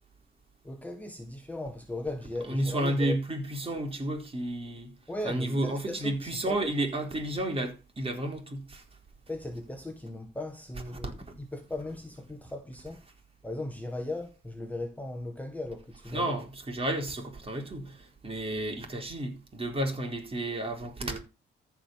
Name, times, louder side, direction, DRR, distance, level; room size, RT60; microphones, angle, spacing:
voice 1, 0.6-3.2 5.1-6.7 9.3-13.0 13.4-16.3, left 2 dB, 5° left, 1.8 m, -37 dB
voice 2, 2.4-4.9 5.2-8.8 11.0-11.1 16.1-21.2, right 1 dB, 30° right, 4.2 m, -32 dB
14.0 x 5.1 x 6.6 m
cardioid pair, 90°, 20 cm